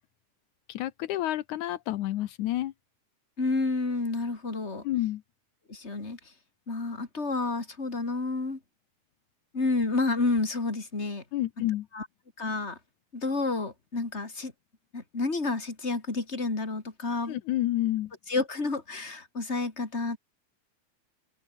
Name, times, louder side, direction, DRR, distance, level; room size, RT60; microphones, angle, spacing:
voice 1, 0.7-2.7 4.8-5.2 11.3-11.9 17.3-18.1, left 14 dB, 80° left, 2.3 m, -29 dB
voice 2, 3.4-4.8 5.7-6.3 6.7-8.6 9.5-11.2 11.9-12.1 12.4-12.8 13.1-14.5 14.9-17.4 18.3-20.2, left 3 dB, 20° left, 3.5 m, -30 dB
open air
omnidirectional pair, 3.5 m